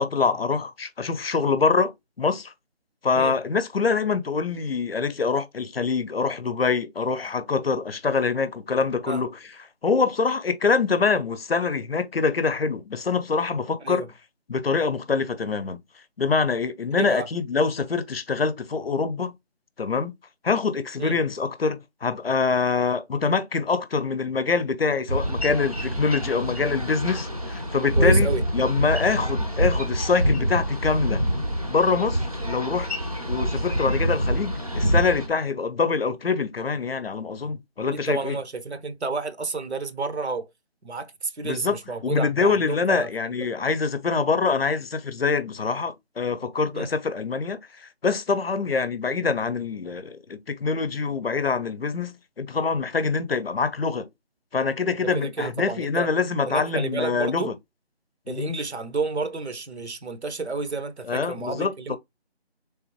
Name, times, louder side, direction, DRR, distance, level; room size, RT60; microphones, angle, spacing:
voice 1, 0.0-2.5 3.0-9.4 9.8-14.0 14.5-15.8 16.2-19.3 19.8-20.1 20.4-31.2 31.7-32.9 33.3-38.4 41.4-41.8 42.0-54.1 54.5-57.5 58.3-58.5 61.1-62.0, left 4 dB, 65° left, 0.6 m, -25 dB
voice 2, 17.0-17.3 21.0-21.2 28.0-28.4 37.9-40.5 40.8-43.1 43.4-43.6 46.7-46.9 55.1-56.1 56.5-57.5 58.3-62.0, right 3 dB, 80° right, 0.8 m, -30 dB
Boat Water vehicle, 25.1-35.3, equal, 35° right, 0.5 m, -26 dB
3.4 x 3.3 x 3.0 m
figure-of-eight pair, 165°, 32 cm